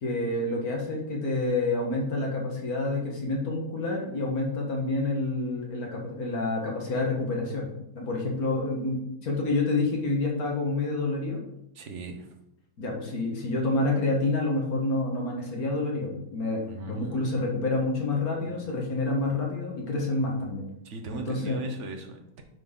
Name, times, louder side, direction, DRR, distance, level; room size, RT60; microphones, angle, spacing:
voice 1, 0.0-11.4 12.8-20.7 21.1-21.7, left 2 dB, 65° left, -1 dB, 1.9 m, -28 dB
voice 2, 11.7-12.3 16.6-17.2 18.5-18.6 20.8-22.4, right 3 dB, 50° right, 5 dB, 1.2 m, -39 dB
11.0 x 4.3 x 3.7 m, 0.83 s
omnidirectional pair, 1.7 m